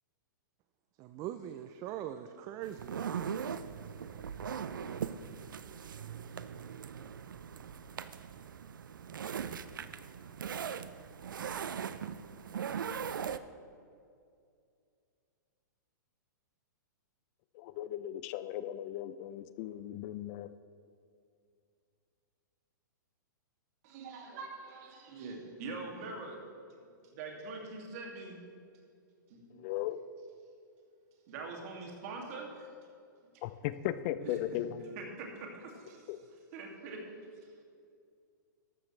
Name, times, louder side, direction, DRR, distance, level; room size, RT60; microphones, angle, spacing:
voice 1, 1.0-3.0, right 11 dB, 30° right, 10 dB, 0.5 m, -41 dB
sound 1, 2.6-13.4, right 7 dB, 85° right, 0.5 m, -40 dB
voice 2, 17.5-20.5 29.5-30.0 33.4-34.8 36.1-36.2, left 13 dB, 40° left, 13 dB, 0.5 m, -37 dB
voice 3, 23.8-26.4 27.0-28.5 29.3-29.6 31.3-32.7 34.2-34.7 35.0-36.1 36.5-37.1 37.4-37.6, right 3 dB, 50° right, 1 dB, 2.5 m, -44 dB
13.5 x 12.5 x 3.3 m, 2.3 s
hypercardioid pair, 125°, 11 cm